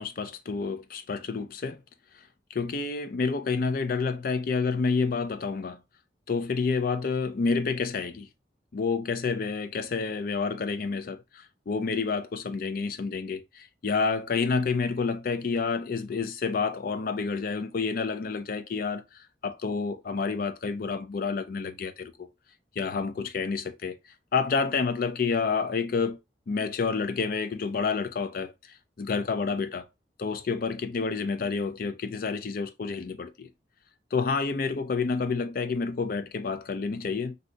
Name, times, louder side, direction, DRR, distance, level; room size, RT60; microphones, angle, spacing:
voice 1, 0.0-1.8 2.5-5.8 6.3-8.3 8.7-22.3 22.8-24.0 24.3-26.2 26.5-28.5 29.0-29.9 30.2-33.5 34.1-37.4, left 4 dB, 55° left, 0.4 m, -29 dB
2.7 x 2.2 x 3.8 m
head